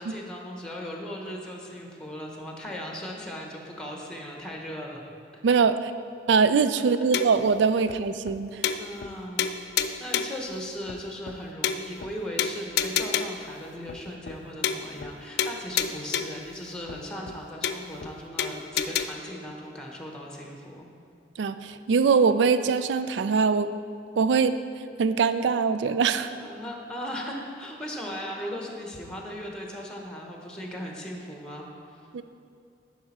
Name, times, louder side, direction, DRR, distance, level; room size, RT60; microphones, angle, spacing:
voice 1, 0.0-5.0 5.3-5.4 8.8-9.5 10.0-20.9 26.4-32.0, equal, 5° left, 0 dB, 0.9 m, -38 dB
voice 2, 5.4-5.9 6.3-8.8 21.4-23.7 24.2-24.6 25.0-26.3 32.1-32.2, right 5 dB, 85° right, 12 dB, 0.4 m, -22 dB
sound 1, 7.1-7.5 7.9-8.0 8.3-8.4 8.6-9.1 9.4-10.4 10.9-11.0 11.3-11.4 11.6-12.1 12.4-13.5 13.9-14.0 14.3-14.4 14.6-15.1 15.4-16.5 16.9-17.0 17.3-17.4 17.6-18.1 18.4-19.0, left 8 dB, 65° left, 0.4 m, -29 dB
11.0 x 5.0 x 4.2 m, 2.5 s
head